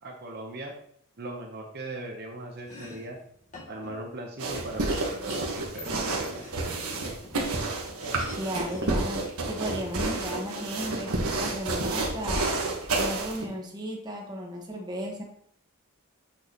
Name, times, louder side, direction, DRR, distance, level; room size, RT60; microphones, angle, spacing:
voice 1, 0.0-0.7 1.2-3.2 3.7-6.5, right 1 dB, 45° right, 1 dB, 0.9 m, -39 dB
Domestic sounds home sounds, 2.5-10.7, left 2 dB, 35° left, 2.1 m, -49 dB
sound 1, 4.4-13.4, right 2 dB, 80° right, 1.4 m, -30 dB
voice 2, 8.4-9.2 9.5-11.1 11.4-12.5 13.0-15.2, equal, 20° right, 0 dB, 1.3 m, -34 dB
7.3 x 6.4 x 2.9 m, 0.65 s
head